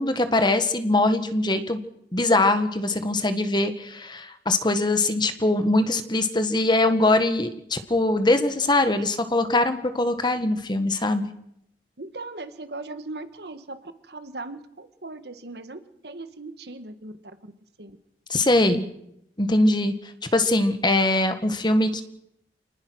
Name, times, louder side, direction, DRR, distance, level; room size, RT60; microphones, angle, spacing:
voice 1, 0.0-1.8 2.1-11.2 18.3-18.9 19.4-19.9 20.3-22.0, left 2 dB, 25° left, 9 dB, 1.7 m, -22 dB
voice 2, 12.0-17.1 17.8-18.0, right 2 dB, 65° right, 10 dB, 1.7 m, -38 dB
27.0 x 19.5 x 6.4 m, 0.78 s
head